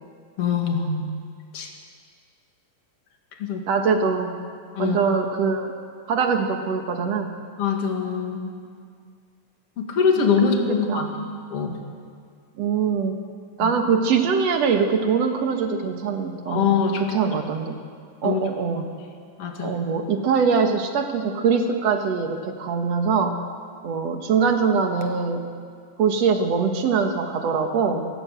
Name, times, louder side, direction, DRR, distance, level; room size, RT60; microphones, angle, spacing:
voice 1, 0.4-1.1 1.5-1.7 3.4-3.6 4.7-5.0 7.6-8.6 9.8-11.8 13.6-13.7 16.5-17.2 18.2-18.4 19.4-19.7, left 6 dB, 50° left, 2 dB, 2.9 m, -23 dB
voice 2, 3.7-4.4 4.8-5.7 6.1-7.4 10.9-11.1 12.6-13.2 13.6-16.7 17.1-17.8 18.2-18.9 19.6-23.4 23.8-25.5 26.0-28.1, right 5 dB, 60° right, 5 dB, 2.5 m, -23 dB
21.5 x 16.5 x 8.0 m, 2.2 s
omnidirectional pair, 3.4 m